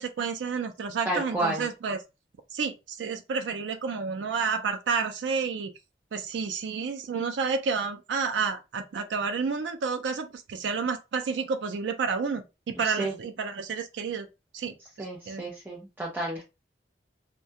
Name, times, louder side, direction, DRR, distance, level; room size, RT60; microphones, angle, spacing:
voice 1, 0.0-2.0 2.5-5.7 6.1-14.3 14.5-14.7 15.3-15.4, right 5 dB, 80° right, 0.4 m, -30 dB
voice 2, 1.1-1.6 12.8-13.1 15.0-16.5, right 1 dB, 10° right, 0.5 m, -31 dB
2.3 x 2.1 x 2.7 m
head